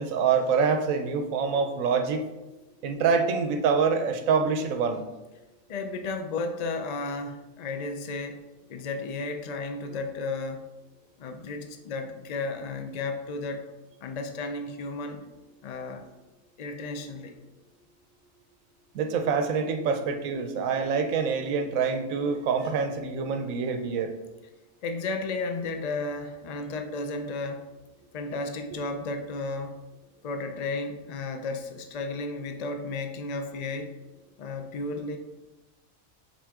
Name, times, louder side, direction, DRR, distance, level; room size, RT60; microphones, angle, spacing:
voice 1, 0.0-2.2 2.8-5.0 18.9-24.1, right 5 dB, 85° right, 7 dB, 1.1 m, -26 dB
voice 2, 5.7-8.4 8.7-10.7 11.2-13.6 14.0-15.2 15.6-16.1 16.6-17.4 24.8-27.7 28.1-29.8 30.2-33.9 34.4-35.2, left 3 dB, 85° left, 6 dB, 0.3 m, -33 dB
6.0 x 4.3 x 3.6 m, 1.1 s
omnidirectional pair, 1.4 m